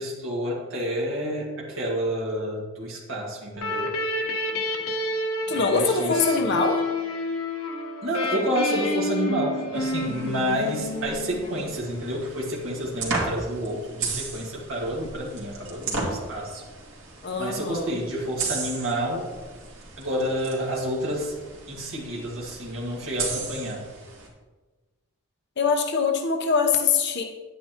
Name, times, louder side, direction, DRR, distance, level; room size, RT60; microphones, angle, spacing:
voice 1, 0.0-3.9 5.5-6.4 8.0-16.6 17.4-19.3 20.0-21.3 21.7-23.8, equal, 65° right, -3 dB, 1.9 m, -29 dB
sound 1, 3.6-12.1, left 2 dB, 80° left, 1.2 m, -29 dB
voice 2, 5.5-6.8 17.2-18.0 25.6-27.2, left 5 dB, 55° left, 3 dB, 0.9 m, -23 dB
sound 2, 9.7-24.3, right 3 dB, 85° right, 2.2 m, -36 dB
9.8 x 9.2 x 3.0 m, 1.3 s
head